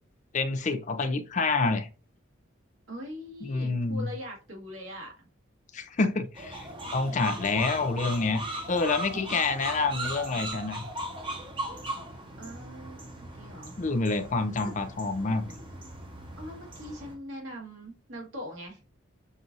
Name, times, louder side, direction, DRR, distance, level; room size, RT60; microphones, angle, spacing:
voice 1, 0.3-1.9 3.4-4.1 5.7-8.4 8.7-10.9 13.8-15.4, left 3 dB, 35° left, 0.4 m, -28 dB
voice 2, 2.9-5.1 6.8-7.3 12.4-13.7 14.6-14.7 16.4-18.8, equal, 70° right, 1.8 m, -42 dB
sound 1, 6.3-17.1, right 2 dB, 25° right, 1.0 m, -38 dB
6.1 x 2.6 x 2.5 m
head